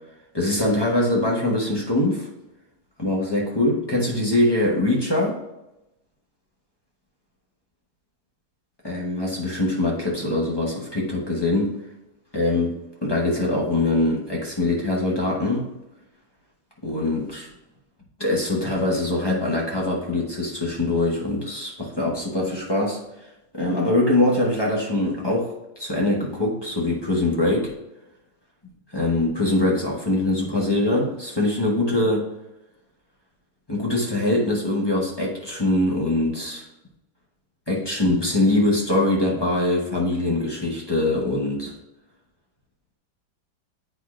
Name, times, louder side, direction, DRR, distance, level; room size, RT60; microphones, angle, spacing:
voice 1, 0.3-2.3 3.0-5.4 8.8-11.8 12.3-15.7 16.8-17.5 18.2-23.0 23.5-27.7 28.9-32.3 33.7-36.6 37.7-41.7, left 2 dB, 35° left, -3 dB, 0.4 m, -23 dB
8.1 x 5.4 x 2.4 m, 0.94 s
omnidirectional pair, 2.2 m